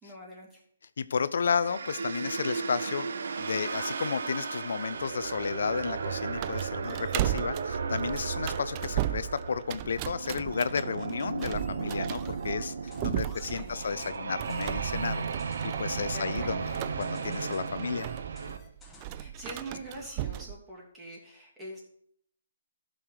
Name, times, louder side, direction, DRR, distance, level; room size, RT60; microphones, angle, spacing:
voice 1, 0.0-0.6 13.3-14.2 16.1-17.0 19.1-21.8, right 1 dB, 10° right, -4 dB, 3.0 m, -44 dB
voice 2, 1.0-3.1 3.4-12.7 13.0-15.2 15.6-16.6 17.0-18.1, left 6 dB, 65° left, 14 dB, 0.4 m, -32 dB
sound 1, 1.6-18.6, right 5 dB, 60° right, 0.9 m, -35 dB
sound 2, 6.3-20.6, right 14 dB, 30° right, 0.4 m, -36 dB
sound 3, 11.1-19.3, left 2 dB, 5° left, 1.4 m, -54 dB
14.0 x 6.3 x 4.8 m, 0.69 s
figure-of-eight pair, 140°, 0 cm